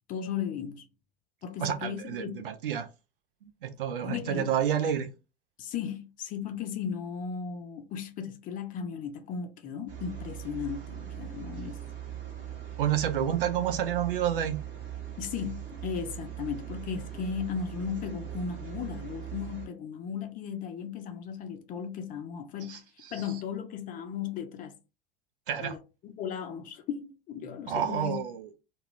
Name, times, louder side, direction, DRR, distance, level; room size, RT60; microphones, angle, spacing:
voice 1, 0.1-0.9 1.4-2.5 4.0-4.5 5.6-11.8 15.2-22.8 23.1-24.7 25.6-28.2, left 7 dB, 30° left, 0.5 m, -36 dB
voice 2, 1.6-2.9 3.4-5.1 12.8-14.6 22.7-22.8 23.1-23.2 25.5-25.8 27.7-28.5, right 9 dB, 65° right, 0.6 m, -29 dB
sound 1, 9.9-19.7, right 10 dB, 40° right, 1.0 m, -40 dB
2.3 x 2.2 x 3.2 m
figure-of-eight pair, 80°, 29 cm